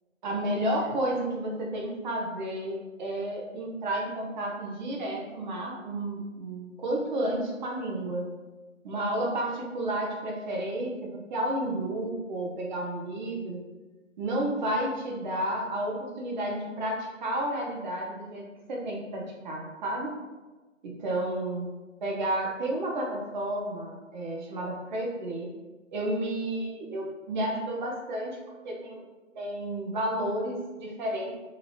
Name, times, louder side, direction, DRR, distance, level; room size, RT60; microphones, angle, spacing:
voice 1, 0.2-8.3 8.8-13.6 14.2-20.2 20.8-21.7 22.0-25.5 25.9-28.4 28.6-29.0 29.3-31.3, right 1 dB, 35° right, -1 dB, 0.7 m, -31 dB
2.8 x 2.6 x 2.8 m, 1.2 s
figure-of-eight pair, 125°, 39 cm